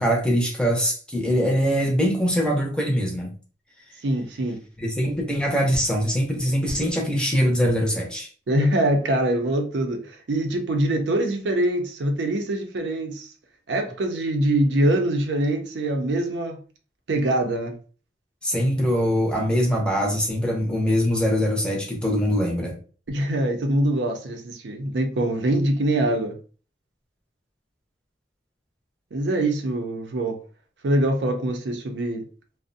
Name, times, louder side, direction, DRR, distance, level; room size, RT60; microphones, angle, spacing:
voice 1, 0.0-3.3 4.8-8.3 18.4-22.8, equal, 5° left, 0.5 m, -23 dB
voice 2, 4.0-4.6 8.5-13.3 13.7-16.6 17.1-17.8 23.1-26.4 29.1-30.4 30.8-32.3, right 1 dB, 85° right, 0.5 m, -24 dB
2.4 x 2.0 x 2.5 m
head